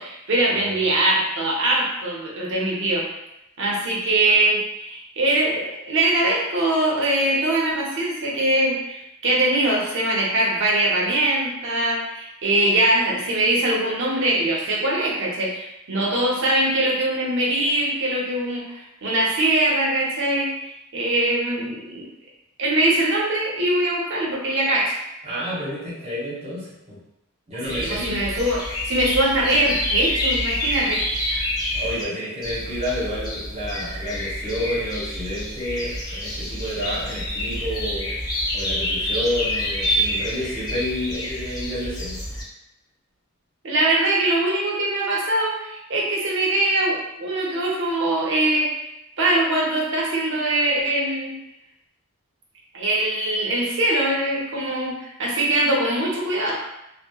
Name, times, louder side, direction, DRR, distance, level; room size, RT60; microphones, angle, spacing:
voice 1, 0.0-3.0 3.6-20.5 20.9-22.1 22.6-25.0 27.6-31.0 31.3-31.4 43.6-48.9 49.2-51.3 52.7-56.5, right 1 dB, 55° right, -3 dB, 0.6 m, -22 dB
voice 2, 0.5-0.9 25.2-27.0 27.5-28.2 31.7-38.1 38.5-42.2, equal, 30° right, -8 dB, 0.8 m, -30 dB
sound 1, 27.6-32.0 32.4-42.4, left 1 dB, 15° left, 0.5 m, -27 dB
2.8 x 2.0 x 2.2 m, 0.88 s
head